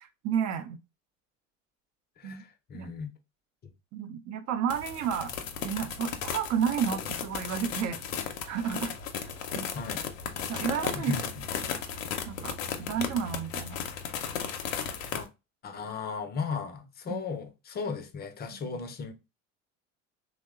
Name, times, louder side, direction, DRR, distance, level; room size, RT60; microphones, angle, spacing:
voice 1, 0.0-0.8 2.2-2.4 2.7-2.9 3.9-5.3 5.6-8.0 8.5-8.9 9.5-9.7 10.5-11.1 12.3-13.8 17.1-17.2 18.5-18.8, right 8 dB, 45° right, 0.6 m, -31 dB
voice 2, 2.2-3.1 9.7-10.0 11.0-11.4 15.1-15.3 15.6-19.1, left 5 dB, 25° left, 0.5 m, -36 dB
sound 1, 4.7-15.2, left 7 dB, 80° left, 0.6 m, -35 dB
2.9 x 2.1 x 2.3 m
hypercardioid pair, 80°, 39 cm